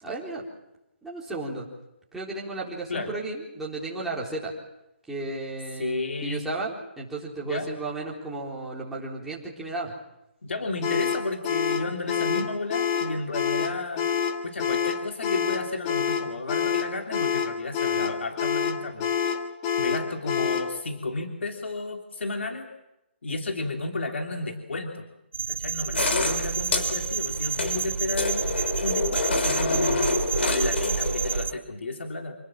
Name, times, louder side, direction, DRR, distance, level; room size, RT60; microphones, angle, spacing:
voice 1, 0.0-0.4 1.0-1.7 2.1-4.5 5.1-9.9, right 2 dB, 5° right, -5 dB, 4.0 m, -34 dB
voice 2, 5.8-6.4 7.4-7.7 10.4-14.0 14.4-19.1 19.8-22.7 23.2-25.1 25.5-28.4 28.8-30.1 30.3-32.3, left 2 dB, 85° left, 3 dB, 3.1 m, -32 dB
sound 1, 10.8-20.7, left 7 dB, 20° left, 1.7 m, -27 dB
sound 2, 25.3-31.5, right 6 dB, 80° right, 1.0 m, -29 dB
sound 3, 26.0-31.4, left 3 dB, 70° left, 4.5 m, -28 dB
27.0 x 19.5 x 7.4 m, 0.89 s
hypercardioid pair, 165°, 6 cm